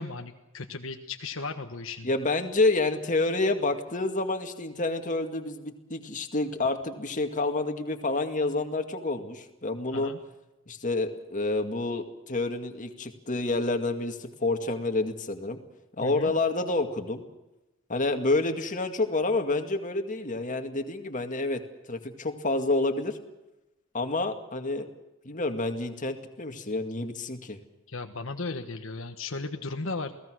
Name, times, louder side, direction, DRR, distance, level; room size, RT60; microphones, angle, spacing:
voice 1, 0.0-2.1 9.9-10.2 16.0-16.3 27.9-30.1, left 3 dB, 65° left, 6 dB, 1.4 m, -36 dB
voice 2, 2.0-10.1 10.7-15.6 16.0-17.2 17.9-21.6 21.9-23.2 23.9-24.9 25.2-27.6, left 2 dB, 40° left, 5 dB, 2.1 m, -28 dB
28.5 x 18.0 x 6.3 m, 0.98 s
head